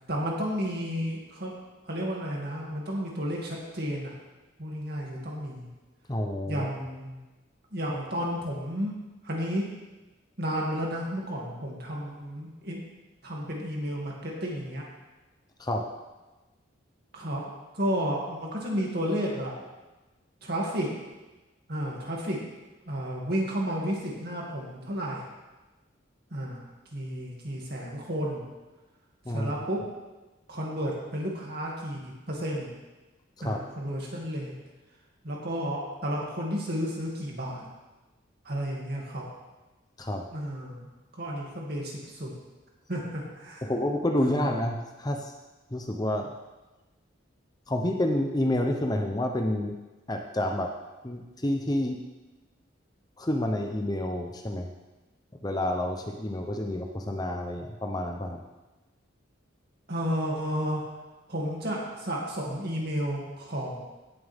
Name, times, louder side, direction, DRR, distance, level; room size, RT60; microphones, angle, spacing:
voice 1, 0.1-1.5 1.8-4.1 4.6-5.7 6.5-7.2 7.7-8.9 9.2-9.7 10.4-12.8 13.2-14.8 17.1-17.5 17.7-19.5 20.4-20.9 21.7-22.4 22.9-25.3 26.3-26.6 26.9-28.4 29.3-29.8 30.5-32.7 33.4-34.5 35.2-37.7 38.4-39.2 40.3-40.9 41.2-42.3 42.9-43.7 44.3-44.5 59.9-60.8 61.3-63.8, equal, 50° right, -3 dB, 2.4 m, -32 dB
voice 2, 6.1-6.7 15.6-15.9 29.2-29.5 33.4-33.6 40.0-40.3 43.6-45.3 45.7-46.3 47.7-49.8 50.1-50.7 51.0-52.0 53.2-54.7 55.4-58.4, left 1 dB, 20° left, 3 dB, 0.7 m, -29 dB
17.0 x 7.5 x 3.6 m, 1.1 s
head